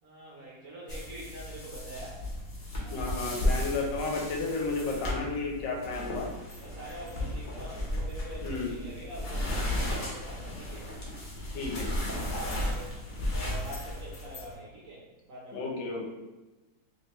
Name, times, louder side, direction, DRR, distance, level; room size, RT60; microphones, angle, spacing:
voice 1, 0.0-2.3 2.8-3.6 5.5-5.7 6.4-10.9 12.3-13.0 13.3-16.1, right 1 dB, 60° right, -5 dB, 1.0 m, -45 dB
sound 1, 0.9-14.5, left 1 dB, 55° left, 0.5 m, -34 dB
voice 2, 2.9-6.3 8.4-8.7 11.5-11.9 15.5-16.0, left 3 dB, 75° left, -1 dB, 1.3 m, -32 dB
3.3 x 3.1 x 3.0 m, 1.1 s
omnidirectional pair, 2.0 m